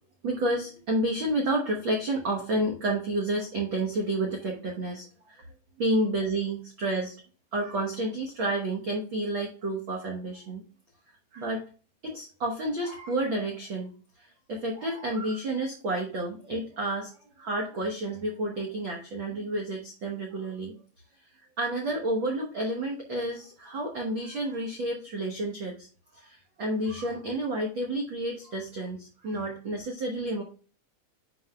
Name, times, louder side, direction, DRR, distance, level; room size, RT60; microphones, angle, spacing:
voice 1, 0.2-5.5 5.8-7.2 7.5-10.6 11.3-11.6 12.0-17.1 17.4-20.7 21.6-25.9 26.1-30.4, right 1 dB, 80° right, 0 dB, 1.1 m, -30 dB
10.0 x 5.0 x 2.3 m, 0.39 s
omnidirectional pair, 4.0 m